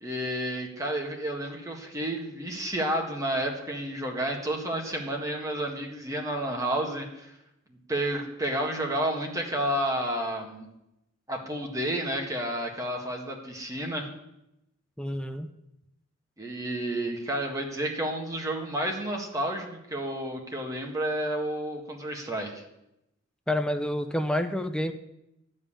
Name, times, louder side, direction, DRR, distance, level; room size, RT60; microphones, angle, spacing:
voice 1, 0.0-7.3 7.9-10.7 11.3-14.1 16.4-22.6, right 1 dB, 15° right, 1 dB, 1.7 m, -31 dB
voice 2, 15.0-15.5 23.5-24.9, left 1 dB, 5° left, 6 dB, 0.7 m, -28 dB
12.0 x 5.5 x 8.7 m, 0.86 s
head